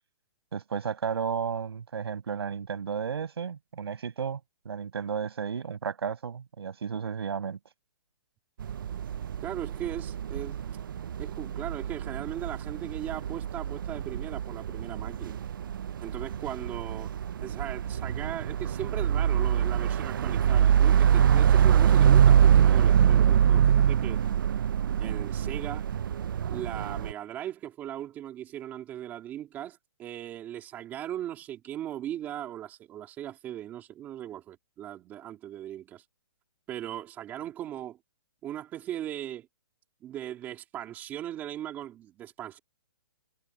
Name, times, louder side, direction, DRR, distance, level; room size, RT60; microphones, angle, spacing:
voice 1, 0.5-4.4 4.6-7.6, right 6 dB, 75° right, 5.9 m, -33 dB
sound 1, 8.6-27.1, right 9 dB, 55° right, 0.4 m, -24 dB
voice 2, 9.4-10.6 11.2-15.4 16.0-24.2 25.0-25.9 26.5-36.0 36.7-38.0 38.4-39.5 40.0-42.6, right 11 dB, 15° right, 2.8 m, -38 dB
hypercardioid pair, 170°, 13 cm